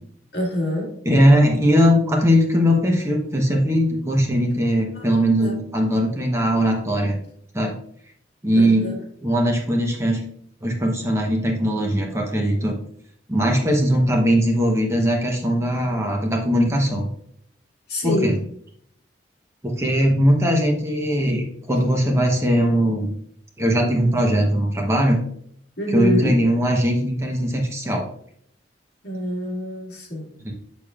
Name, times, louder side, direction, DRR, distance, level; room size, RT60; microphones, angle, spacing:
voice 1, 0.3-0.9 4.9-5.0 5.4-5.6 8.5-9.0 17.9-18.4 25.8-26.4 29.0-30.3, equal, 60° left, -2 dB, 2.1 m, -26 dB
voice 2, 1.0-7.2 7.5-7.8 8.4-8.9 9.2-10.2 10.6-12.8 13.3-17.1 18.0-18.3 19.6-23.1 23.6-25.2 25.9-28.0 30.4-30.5, equal, 15° right, 0 dB, 0.9 m, -20 dB
6.9 x 6.6 x 2.4 m, 0.66 s
head